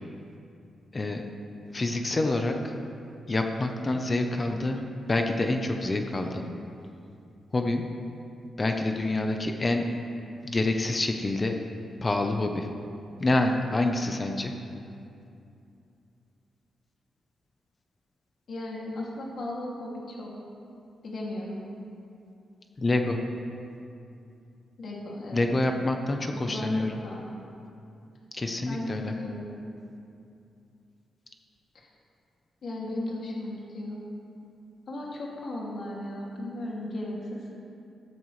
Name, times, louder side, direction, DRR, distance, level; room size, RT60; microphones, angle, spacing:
voice 1, 1.7-2.6 3.3-4.8 5.1-6.5 7.5-7.8 8.6-9.8 10.4-11.5 12.0-12.7 13.2-14.5 22.8-23.2 25.3-27.0 28.3-29.1, left 2 dB, 25° left, 4 dB, 0.9 m, -27 dB
voice 2, 18.5-20.3 21.0-21.6 24.8-25.5 26.3-27.3 28.7-29.6 32.6-34.0 34.9-37.4, left 1 dB, 55° left, -4 dB, 2.5 m, -36 dB
15.0 x 14.0 x 3.3 m, 2.6 s
cardioid pair, 120°, 0 cm